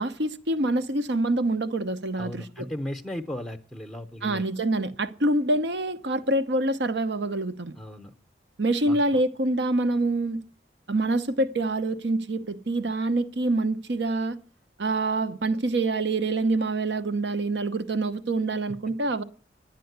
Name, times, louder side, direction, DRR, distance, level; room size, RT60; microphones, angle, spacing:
voice 1, 0.0-2.7 4.2-7.7 8.6-10.4 10.9-14.4 14.8-19.2, right 2 dB, 75° right, 0.9 m, -26 dB
voice 2, 2.2-4.4 7.8-8.1 8.8-9.0, left 1 dB, 5° left, 0.7 m, -36 dB
11.5 x 9.2 x 8.0 m
head